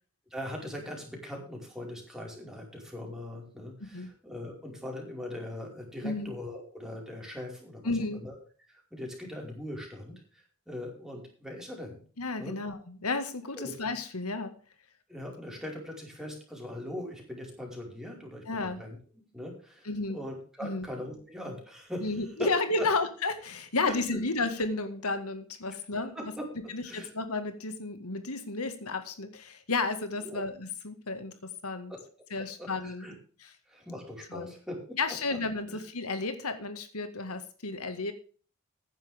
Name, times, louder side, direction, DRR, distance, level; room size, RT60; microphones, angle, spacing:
voice 1, 0.3-7.9 8.2-8.3 8.7-12.0 12.4-12.6 13.5-13.7 15.1-19.0 19.3-22.1 22.4-22.5 22.8-22.9 23.9-24.0 26.1-26.4 26.8-27.1 30.2-30.4 31.9-32.0 32.6-33.1 33.7-35.0 35.3-35.4 35.7-35.8, left 1 dB, ahead, -1 dB, 5.1 m, -40 dB
voice 2, 7.8-8.2 12.2-14.5 18.5-18.8 19.9-20.2 20.6-20.8 22.0-26.3 26.7-31.3 31.6-31.9 32.3-33.1 33.4-33.5 34.3-34.5 35.0-38.1, left 3 dB, 90° left, 9 dB, 1.9 m, -32 dB
15.5 x 10.5 x 3.6 m, 0.41 s
head